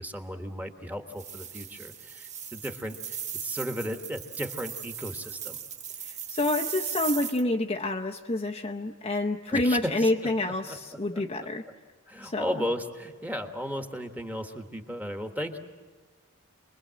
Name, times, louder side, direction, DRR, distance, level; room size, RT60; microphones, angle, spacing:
voice 1, 0.0-5.6 9.5-11.2 12.1-15.6, equal, 5° right, 5 dB, 1.4 m, -35 dB
sound 1, 1.1-7.4, right 8 dB, 30° right, 1.0 m, -38 dB
voice 2, 6.0-11.6 12.2-12.7, left 2 dB, 25° left, 1 dB, 0.7 m, -28 dB
27.5 x 21.5 x 7.6 m, 1.5 s
head